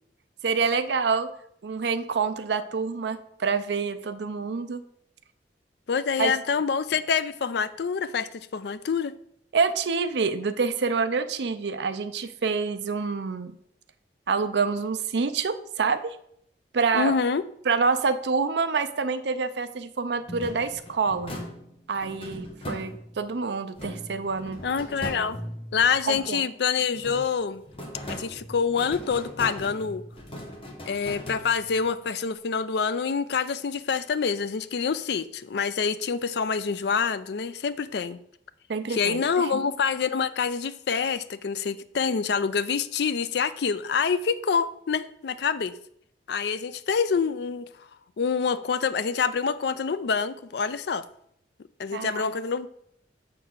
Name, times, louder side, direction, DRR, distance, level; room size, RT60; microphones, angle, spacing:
voice 1, 0.4-1.3 1.6-4.8 6.2-6.4 9.5-13.6 14.3-16.2 16.7-17.1 17.7-21.4 21.9-24.6 25.0-25.3 26.1-26.4 38.7-39.2 39.5-39.6 51.9-52.3, right 5 dB, 70° right, 0.5 m, -27 dB
voice 2, 5.9-9.1 16.9-17.4 23.9-24.0 24.6-25.4 25.7-27.6 28.1-30.0 30.8-38.2 38.9-45.8 46.3-47.9 48.2-51.0 51.8-52.7, left 6 dB, 65° left, 0.4 m, -26 dB
sound 1, 20.3-23.3 23.8-26.6 26.9-31.9, left 1 dB, 30° left, 1.1 m, -39 dB
6.7 x 3.9 x 6.4 m
head